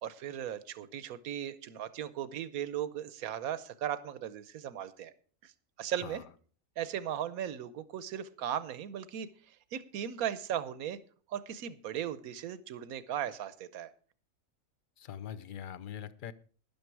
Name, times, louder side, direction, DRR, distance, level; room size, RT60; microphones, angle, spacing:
voice 1, 0.0-5.1 5.4-5.5 5.8-6.2 6.8-9.3 9.7-11.0 11.3-13.9, right 10 dB, 90° right, 15 dB, 1.2 m, -37 dB
voice 2, 5.9-6.2 15.0-16.3, left 9 dB, 55° left, 14 dB, 0.6 m, -43 dB
12.0 x 10.5 x 4.6 m, 0.44 s
omnidirectional pair, 1.5 m